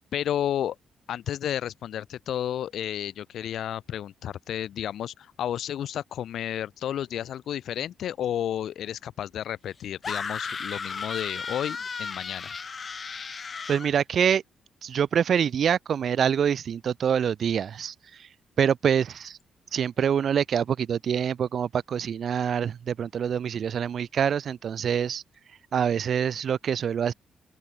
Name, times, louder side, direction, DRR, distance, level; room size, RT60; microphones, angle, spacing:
voice 1, 0.1-0.8 1.1-12.5, left 10 dB, 65° left, 1.9 m, -32 dB
sound 1, 10.0-13.9, left 5 dB, 30° left, 1.9 m, -34 dB
voice 2, 13.7-14.4 14.8-18.3 18.6-19.4 19.7-25.2 25.7-27.1, right 8 dB, 50° right, 0.8 m, -25 dB
cardioid pair, 160°, 0 cm